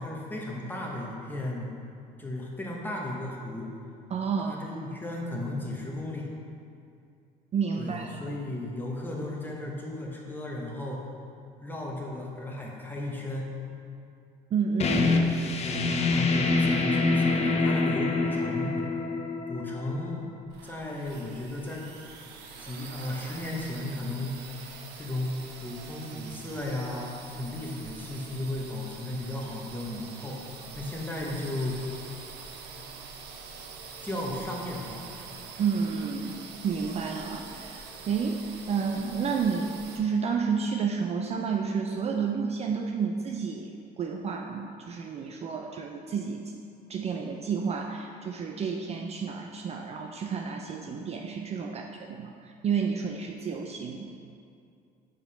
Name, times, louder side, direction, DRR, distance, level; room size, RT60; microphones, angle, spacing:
voice 1, 0.0-1.7 2.2-3.7 4.4-6.3 7.8-11.0 11.6-13.5 15.6-18.7 19.5-20.3 20.6-21.9 22.6-24.5 24.9-30.4 30.7-31.8 34.0-35.0, left 1 dB, 10° left, -2 dB, 0.9 m, -35 dB
voice 2, 4.1-4.6 7.5-8.4 14.5-15.4 35.6-36.4 36.6-38.4 38.7-43.7 44.0-46.4 46.9-54.1, right 6 dB, 40° right, 2 dB, 0.4 m, -30 dB
sound 1, 14.8-20.2, left 3 dB, 40° left, 0.5 m, -26 dB
sound 2, 20.4-40.0, right 5 dB, 80° right, 0.6 m, -45 dB
4.7 x 3.8 x 5.5 m, 2.5 s
cardioid pair, 110°, 17 cm